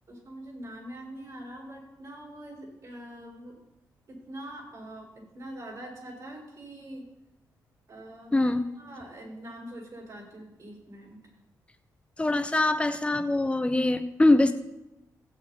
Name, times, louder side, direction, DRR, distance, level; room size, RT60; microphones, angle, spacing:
voice 1, 0.1-3.6 4.1-7.1 7.9-11.2 12.2-12.4, right 1 dB, 55° right, -2 dB, 5.2 m, -43 dB
voice 2, 8.3-8.6 12.2-14.5, left 2 dB, 15° left, 8 dB, 0.9 m, -23 dB
17.0 x 8.1 x 4.1 m, 0.93 s
cardioid pair, 85°, 7 cm